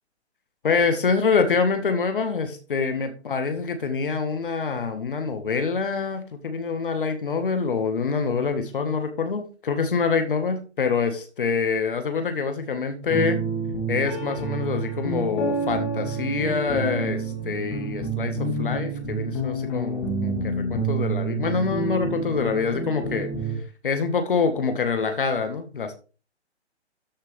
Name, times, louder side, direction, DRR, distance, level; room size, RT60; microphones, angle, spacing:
voice 1, 0.6-13.4 13.9-23.3 23.8-25.9, left 5 dB, 50° left, 7 dB, 1.8 m, -25 dB
sound 1, 13.1-23.6, right 3 dB, 20° left, 2.6 m, -28 dB
13.0 x 6.6 x 3.5 m, 0.35 s
figure-of-eight pair, 140°, 34 cm